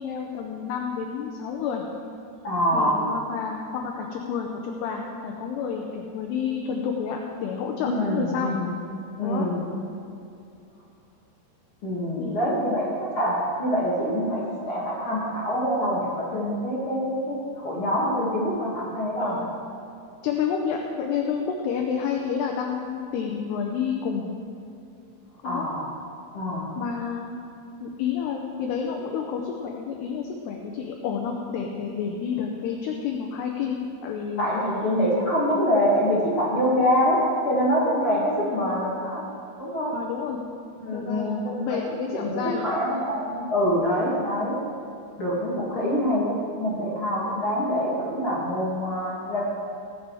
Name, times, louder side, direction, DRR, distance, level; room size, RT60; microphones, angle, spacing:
voice 1, 0.0-1.8 2.7-8.5 9.2-9.5 12.2-12.8 19.2-19.5 20.2-24.3 25.4-25.7 26.8-27.4 27.8-34.5 38.4-38.8 39.9-40.4 40.9-42.8 46.0-46.1, left 7 dB, 75° left, 1 dB, 2.7 m, -30 dB
voice 2, 2.4-3.1 7.8-8.7 9.2-9.6 11.8-19.4 25.4-25.9 26.3-26.7 34.4-37.2 37.4-39.2 39.6-39.9 40.8-41.8 42.2-44.6 45.2-49.4, equal, 40° left, -7 dB, 2.1 m, -25 dB
20.0 x 7.7 x 4.9 m, 2.6 s
omnidirectional pair, 5.3 m